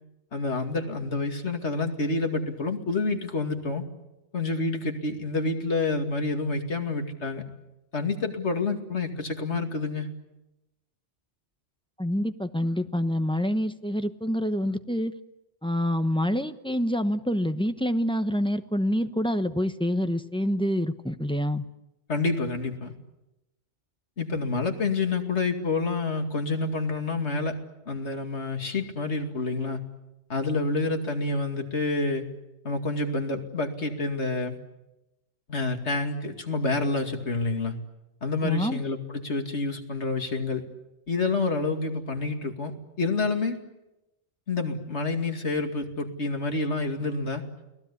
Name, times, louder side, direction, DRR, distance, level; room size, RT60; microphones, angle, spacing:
voice 1, 0.3-3.8 4.3-7.4 7.9-10.1 22.1-22.9 24.2-27.6 27.9-29.8 30.3-32.3 32.6-34.6 35.5-37.7 38.2-40.6 41.1-43.6 44.5-47.5, left 3 dB, 70° left, 5 dB, 2.7 m, -28 dB
voice 2, 12.0-15.1 15.6-21.6 38.4-38.8, equal, 5° left, 9 dB, 0.9 m, -27 dB
29.5 x 19.0 x 8.5 m, 0.96 s
omnidirectional pair, 1.2 m